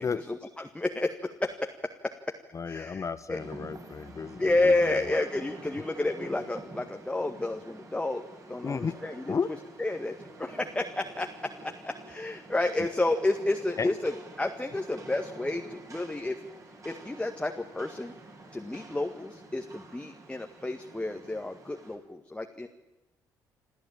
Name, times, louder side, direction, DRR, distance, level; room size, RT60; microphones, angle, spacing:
voice 1, 0.0-2.4 2.7-3.4 4.4-9.3 9.8-14.1 14.4-16.4 16.8-18.1 18.5-22.7, left 2 dB, 10° left, 5 dB, 1.9 m, -31 dB
voice 2, 2.5-5.2 8.6-8.9 9.3-9.5 13.8-13.9, left 5 dB, 35° left, 13 dB, 0.9 m, -33 dB
Rain, 3.3-22.0, right 2 dB, 35° right, 6.4 m, -48 dB
27.5 x 14.5 x 8.9 m, 0.98 s
figure-of-eight pair, 45°, 10 cm